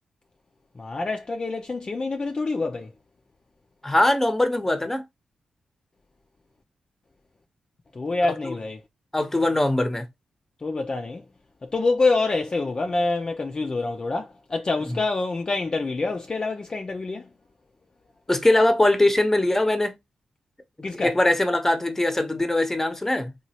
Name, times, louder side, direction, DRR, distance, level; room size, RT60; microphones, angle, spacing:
voice 1, 0.8-2.9 8.0-8.8 10.6-11.2 11.6-17.3 20.8-21.2, left 3 dB, 40° left, 0.4 m, -26 dB
voice 2, 3.8-5.0 8.4-8.6 9.1-10.0 14.9-15.0 18.3-19.9 20.9-23.3, left 1 dB, 15° left, 0.8 m, -21 dB
3.0 x 2.3 x 2.8 m
supercardioid pair, 45°, 2 cm